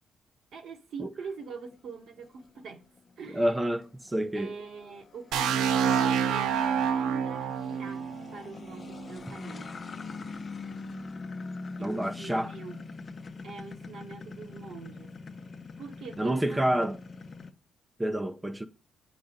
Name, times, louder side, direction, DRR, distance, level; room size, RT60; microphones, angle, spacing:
voice 1, 0.5-2.8 3.2-3.5 4.3-9.8 11.8-12.8 13.4-15.2 15.8-16.6, right 4 dB, 65° right, 1.7 m, -43 dB
sound 1, 1.4-17.5, left 4 dB, 40° left, 0.9 m, -44 dB
voice 2, 3.3-4.5 11.8-12.5 16.2-17.0 18.0-18.6, right 1 dB, 10° right, 0.8 m, -28 dB
sound 2, 5.3-9.1, right 7 dB, 90° right, 0.6 m, -27 dB
8.4 x 4.0 x 6.6 m
cardioid pair, 90°, 0 cm